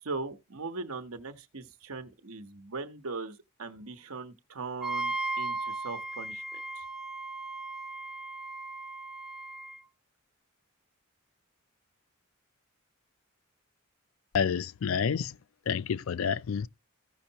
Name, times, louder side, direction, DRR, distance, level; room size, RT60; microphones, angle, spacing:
voice 1, 0.0-6.8, right 3 dB, 85° right, 1.0 m, -40 dB
Wind instrument woodwind instrument, 4.8-9.8, right 2 dB, 5° right, 0.5 m, -36 dB
voice 2, 14.3-15.4 15.7-16.7, left 7 dB, 70° left, 0.4 m, -29 dB
15.5 x 5.5 x 2.8 m
head